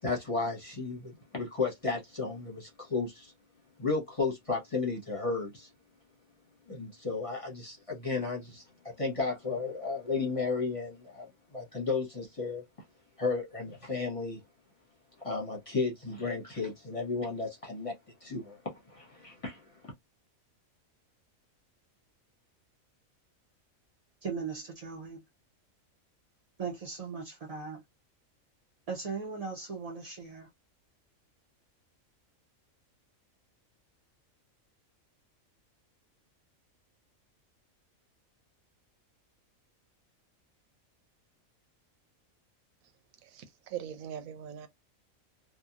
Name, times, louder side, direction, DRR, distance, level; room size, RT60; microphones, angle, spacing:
voice 1, 0.0-3.3 3.8-5.7 6.7-12.6 13.2-14.4 15.2-19.9, left 4 dB, 30° left, 0.8 m, -34 dB
voice 2, 24.2-25.2 26.6-27.8 28.9-30.5, right 5 dB, 50° right, 0.4 m, -38 dB
voice 3, 43.2-44.7, right 9 dB, 80° right, 1.0 m, -41 dB
2.8 x 2.2 x 2.4 m
omnidirectional pair, 1.4 m